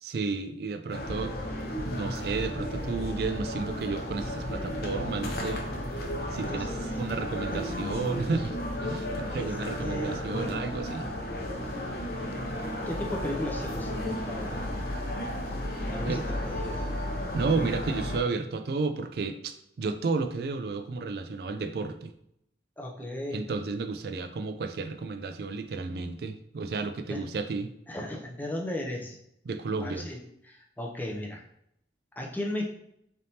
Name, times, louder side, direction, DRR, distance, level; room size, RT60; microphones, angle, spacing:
voice 1, 0.0-1.4 1.9-5.7 6.3-11.1 16.0-16.2 17.3-22.1 23.3-27.7 29.5-30.1, right 4 dB, 55° right, 8 dB, 0.3 m, -32 dB
sound 1, 0.9-18.2, left 1 dB, 55° left, 0.7 m, -33 dB
voice 2, 7.2-7.6 9.3-11.1 12.9-14.8 15.9-16.2 16.6-16.9 22.8-23.4 27.1-27.3 27.9-29.2 29.8-31.4 32.2-32.6, left 1 dB, 10° left, 0 dB, 0.5 m, -36 dB
4.0 x 3.4 x 2.8 m, 0.77 s
head